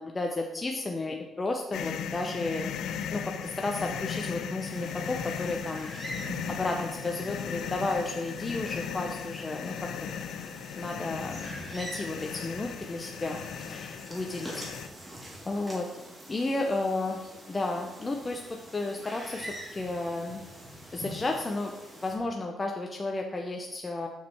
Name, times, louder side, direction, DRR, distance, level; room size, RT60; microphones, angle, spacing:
voice 1, 0.0-2.7 3.1-5.9 6.5-10.2 10.7-13.4 13.7-14.6 15.5-16.0 16.3-17.2 17.5-18.4 18.7-20.4 20.9-24.1, left 2 dB, 25° left, 2 dB, 0.7 m, -33 dB
sound 1, 1.7-14.9, left 7 dB, 80° left, 0.4 m, -37 dB
sound 2, 4.6-22.2, equal, 20° right, 2.2 m, -45 dB
6.4 x 5.8 x 4.5 m, 1.0 s
cardioid pair, 90°, 0 cm